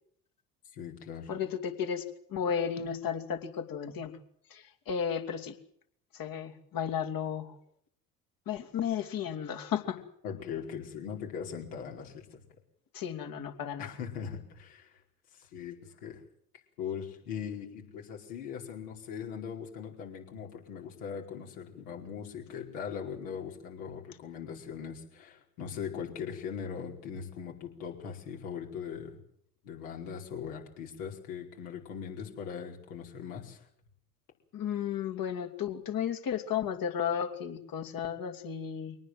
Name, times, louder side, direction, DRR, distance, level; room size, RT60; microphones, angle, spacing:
voice 1, 0.7-1.3 10.2-12.2 13.8-15.0 15.4-16.2 16.8-29.2 29.6-33.6, left 7 dB, 70° left, 1 dB, 4.9 m, -40 dB
voice 2, 1.3-2.0 2.3-4.1 4.5-5.5 6.1-7.5 8.5-10.0 12.9-13.9 34.5-39.0, left 8 dB, 45° left, 6 dB, 2.8 m, -33 dB
23.5 x 19.0 x 7.8 m, 0.67 s
figure-of-eight pair, 60°, 47 cm